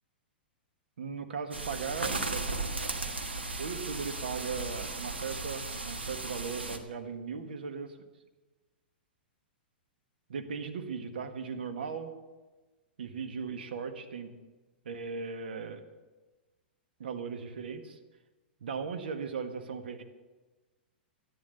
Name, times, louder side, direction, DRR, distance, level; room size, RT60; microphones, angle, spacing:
voice 1, 1.0-2.4 3.6-8.0 10.3-12.1 13.0-14.3 14.8-15.8 17.0-18.0 18.6-20.0, right 5 dB, 70° right, 6 dB, 1.6 m, -37 dB
sound 1, 1.5-6.8, right 3 dB, 90° right, 1.4 m, -36 dB
12.5 x 11.0 x 6.9 m, 1.2 s
figure-of-eight pair, 105°, 6 cm